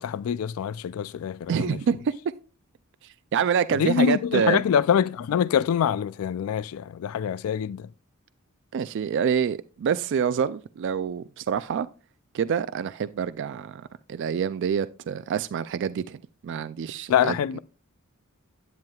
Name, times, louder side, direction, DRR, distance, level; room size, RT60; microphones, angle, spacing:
voice 1, 0.0-1.8 3.8-7.9 17.1-17.6, left 8 dB, 75° left, 0.3 m, -25 dB
voice 2, 1.5-2.2 3.3-4.6 8.7-11.9 12.3-17.6, right 7 dB, 60° right, 0.3 m, -27 dB
10.5 x 9.0 x 2.3 m
head